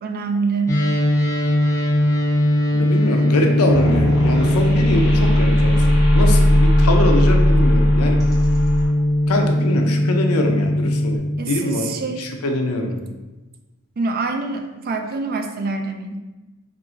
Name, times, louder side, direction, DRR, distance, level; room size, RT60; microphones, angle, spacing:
voice 1, 0.0-0.8 11.4-12.3 14.0-16.2, right 4 dB, 45° right, 5 dB, 0.4 m, -25 dB
sound 1, 0.7-11.2, left 1 dB, 15° left, 0.6 m, -19 dB
voice 2, 2.7-5.9 6.1-8.3 9.3-13.1, left 1 dB, 75° left, 3 dB, 0.6 m, -23 dB
sound 2, 3.7-8.9, left 1 dB, ahead, 1.2 m, -19 dB
4.6 x 2.5 x 3.7 m, 1.1 s
head